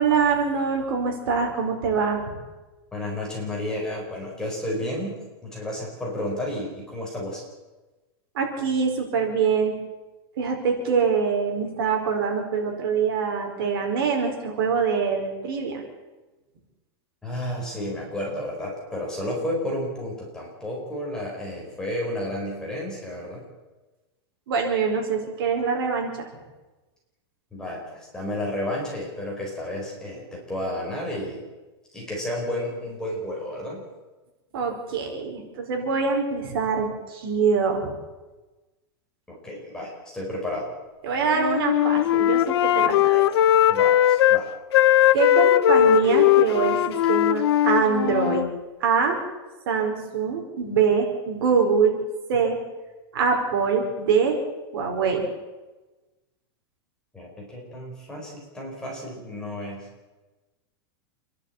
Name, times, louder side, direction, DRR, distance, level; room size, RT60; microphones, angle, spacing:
voice 1, 0.0-2.3 8.3-9.8 10.4-15.8 24.5-26.3 34.5-38.0 41.0-43.3 45.1-48.5 48.8-49.2 49.7-52.0 52.3-52.6 53.1-54.4 54.7-55.3, right 5 dB, 60° right, 2 dB, 4.9 m, -24 dB
voice 2, 2.9-5.2 5.4-7.4 17.2-23.4 27.5-31.4 31.9-33.8 39.3-40.7 43.7-44.5 57.1-59.8, left 1 dB, 5° left, -3 dB, 4.4 m, -32 dB
Wind instrument woodwind instrument, 41.3-44.4 44.7-48.5, left 12 dB, 75° left, 0.8 m, -19 dB
27.0 x 11.5 x 8.6 m, 1.2 s
supercardioid pair, 175°, 13 cm